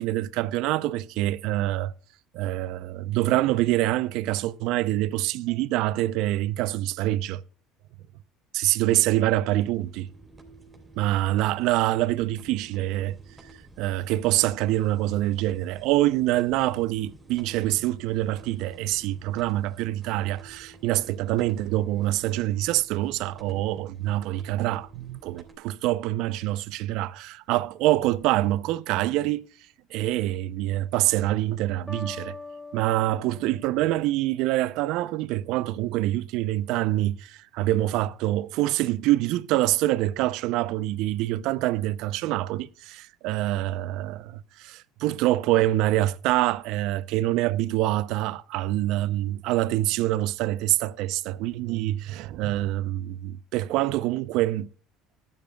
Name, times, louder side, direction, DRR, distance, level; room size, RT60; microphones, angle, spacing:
voice 1, 0.0-1.9 2.3-7.4 8.5-10.1 11.0-13.5 13.8-29.5 29.9-32.3 32.7-54.7, right 15 dB, 70° right, 0.5 m, -25 dB
sound 1, 9.6-25.6, right 3 dB, 20° right, 3.2 m, -51 dB
sound 2, 31.9-34.7, left 2 dB, ahead, 1.4 m, -43 dB
14.5 x 10.5 x 2.3 m
hypercardioid pair, 80°, 0 cm